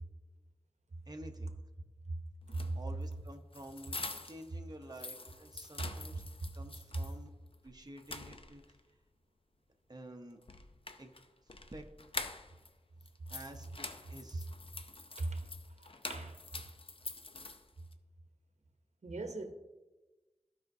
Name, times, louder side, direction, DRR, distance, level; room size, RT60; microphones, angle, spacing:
voice 1, 1.1-1.5 2.7-4.0 4.2-6.2 6.5-7.3 7.6-8.6 9.9-10.4 11.0-11.1 11.4-11.9 13.3-14.7, right 1 dB, 35° right, 0.8 m, -50 dB
sound 1, 2.4-4.5 4.8-7.2 7.5-7.6 8.0-8.8 10.4-12.7 13.0-17.9, left 3 dB, 55° left, 0.6 m, -46 dB
voice 2, 15.2-15.5 15.8-16.4 19.0-19.5, right 2 dB, 85° right, 0.8 m, -39 dB
14.5 x 5.0 x 2.7 m
wide cardioid pair, 50°, 11 cm